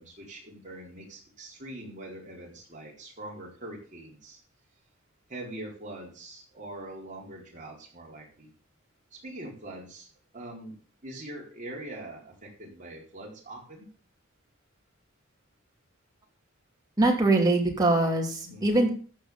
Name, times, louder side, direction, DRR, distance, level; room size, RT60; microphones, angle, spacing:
voice 1, 0.0-4.4 5.3-8.5 9.2-10.1 10.3-10.8 11.0-13.9 18.4-18.8, right 1 dB, 35° right, -2 dB, 4.2 m, -43 dB
voice 2, 17.0-18.9, right 2 dB, 20° right, 0 dB, 2.8 m, -23 dB
14.0 x 4.8 x 7.2 m, 0.42 s
head